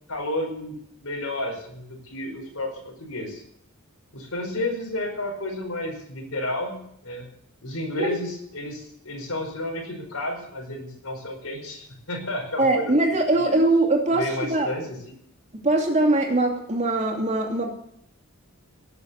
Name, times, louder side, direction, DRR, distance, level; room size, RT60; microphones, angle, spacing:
voice 1, 0.1-3.4 4.1-7.3 7.6-13.6 14.1-15.2, left 1 dB, 70° left, -1 dB, 5.0 m, -32 dB
voice 2, 12.6-14.7 15.6-17.7, right 2 dB, 30° right, 2 dB, 2.8 m, -22 dB
18.0 x 7.3 x 8.3 m, 0.70 s
head